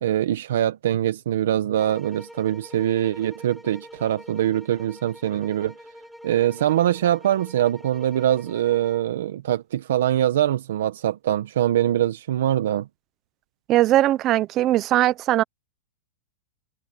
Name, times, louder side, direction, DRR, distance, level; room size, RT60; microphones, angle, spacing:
voice 1, 0.0-5.7 6.2-12.9, right 11 dB, 65° right, 0.9 m, -23 dB
sound 1, 1.8-9.1, equal, ahead, 4.7 m, -45 dB
voice 2, 13.7-15.4, right 14 dB, 20° right, 0.4 m, -20 dB
supercardioid pair, 175°, 0 cm